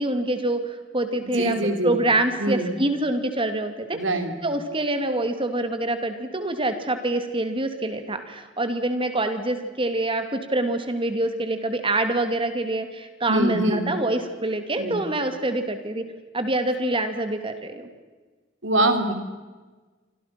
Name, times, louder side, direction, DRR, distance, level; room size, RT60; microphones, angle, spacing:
voice 1, 0.0-1.6 1.8-4.0 4.4-16.1 16.3-17.9, right 2 dB, 25° right, 8 dB, 2.5 m, -25 dB
voice 2, 1.2-2.0 2.4-2.7 3.9-4.4 13.3-13.9 14.8-15.0 18.6-19.1, right 1 dB, 65° right, 7 dB, 3.4 m, -24 dB
28.5 x 25.0 x 6.0 m, 1.3 s
head